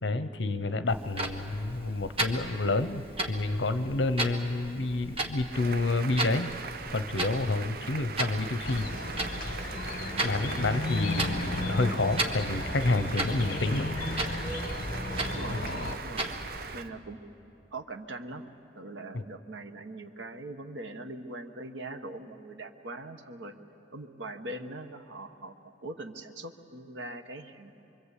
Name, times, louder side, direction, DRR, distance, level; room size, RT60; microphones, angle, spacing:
voice 1, 0.0-6.5 6.9-8.9 10.2-13.9 15.5-15.6 19.1-19.2, left 2 dB, 75° left, 11 dB, 0.9 m, -29 dB
Clock, 0.9-16.9, right 2 dB, 30° right, 1.6 m, -37 dB
sound 1, 5.5-16.8, right 5 dB, 55° right, 0.6 m, -41 dB
sound 2, 8.6-16.0, left 2 dB, 50° left, 1.9 m, -34 dB
voice 2, 15.2-16.3 16.7-17.2 17.7-23.5 23.9-27.7, right 2 dB, 80° right, 7 dB, 1.3 m, -42 dB
25.0 x 24.5 x 8.3 m, 3.0 s
head